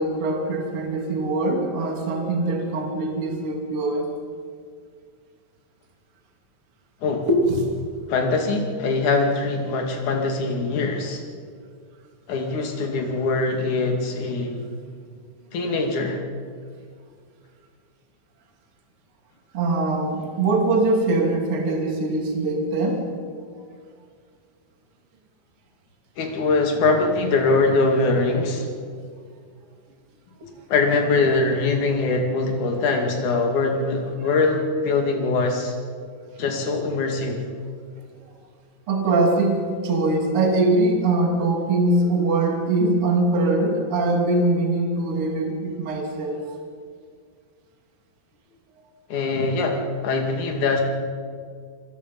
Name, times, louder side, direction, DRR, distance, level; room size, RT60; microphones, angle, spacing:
voice 1, 0.0-4.0 7.3-7.7 19.5-23.1 30.4-30.5 38.9-46.5, right 2 dB, 35° right, 1 dB, 3.2 m, -22 dB
voice 2, 8.1-11.2 12.3-14.7 15.5-16.2 26.2-28.7 30.7-35.7 36.4-37.4 49.1-50.8, left 3 dB, 50° left, 3 dB, 3.5 m, -22 dB
28.0 x 21.5 x 5.5 m, 2.1 s
omnidirectional pair, 5.0 m